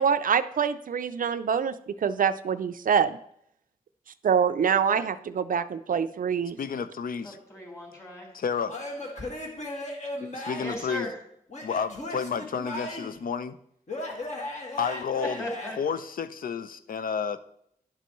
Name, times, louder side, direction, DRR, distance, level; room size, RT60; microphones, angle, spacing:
voice 1, 0.0-1.7 2.0-3.2 4.2-6.6, right 7 dB, 65° right, 12 dB, 0.4 m, -25 dB
voice 2, 6.6-7.4 8.3-8.7 10.2-11.1 11.6-13.6 14.8-15.4 15.8-17.4, left 6 dB, 70° left, 13 dB, 0.5 m, -31 dB
voice 3, 7.2-8.3 9.2-9.3 10.6-11.1 15.4-15.8, left 1 dB, 20° left, 0 dB, 3.4 m, -37 dB
Male speech man speaking / Yell / Laughter, 8.7-10.8 11.5-13.2 13.9-15.7, left 1 dB, 50° left, 1.8 m, -36 dB
10.5 x 6.8 x 3.1 m, 0.72 s
wide cardioid pair, 80°, 15 cm